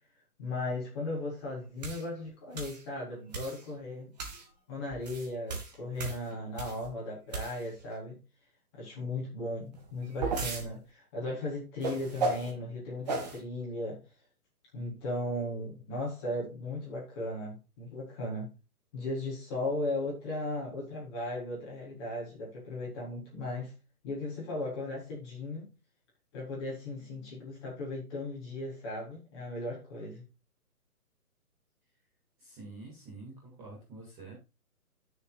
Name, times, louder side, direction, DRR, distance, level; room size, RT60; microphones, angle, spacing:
voice 1, 0.4-4.1 4.7-8.2 8.7-14.0 14.7-18.5 18.9-23.7 24.0-25.7 26.3-30.2, left 2 dB, 15° left, 4.0 m, -37 dB
sound 1, 1.8-2.0 2.6-2.8 3.3-3.6 4.2-4.5 4.9-6.9 7.3-7.8 9.7-10.7 11.8-12.5 13.1-13.4, right 3 dB, 25° right, 1.9 m, -35 dB
voice 2, 32.4-34.4, right 3 dB, 10° right, 2.2 m, -47 dB
13.0 x 6.7 x 2.5 m
hypercardioid pair, 175°, 45 cm